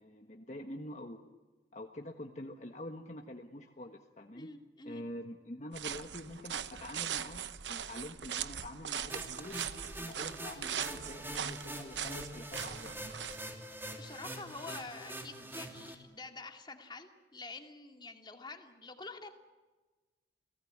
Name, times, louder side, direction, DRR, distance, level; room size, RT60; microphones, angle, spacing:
voice 1, 0.0-1.3 1.7-4.5 4.8-9.7 10.0-13.0, left 1 dB, 40° left, 3 dB, 1.4 m, -46 dB
voice 2, 4.3-5.0 14.0-19.3, left 3 dB, 25° left, 4 dB, 2.5 m, -47 dB
sound 1, 5.7-13.4, right 9 dB, 90° right, 0.9 m, -40 dB
sound 2, 9.1-15.9, right 1 dB, 15° right, 3.1 m, -44 dB
30.0 x 18.0 x 8.8 m, 1.3 s
head